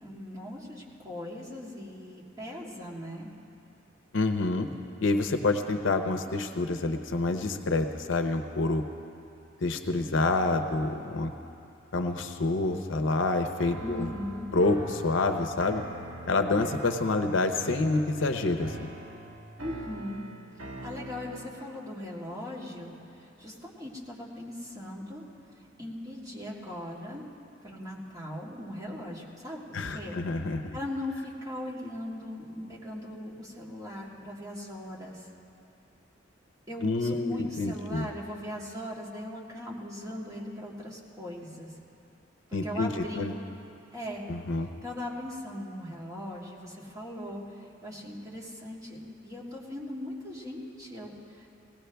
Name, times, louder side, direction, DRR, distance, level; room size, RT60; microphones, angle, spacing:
voice 1, 0.0-3.3 13.8-14.5 19.6-20.2 20.8-25.2 25.6-27.2 27.6-30.2 30.7-35.3 36.7-41.7 42.6-43.3 43.9-44.3 44.8-51.5, left 1 dB, 20° right, -4 dB, 1.8 m, -39 dB
voice 2, 4.1-4.7 5.0-8.8 9.6-11.3 11.9-14.1 14.5-15.8 16.3-18.9 29.7-30.8 36.8-38.1 42.5-43.3 44.3-44.7, left 2 dB, 70° left, 6 dB, 0.7 m, -27 dB
sound 1, 13.6-21.7, right 1 dB, 85° right, 1.5 m, -43 dB
19.0 x 17.0 x 3.4 m, 2.7 s
head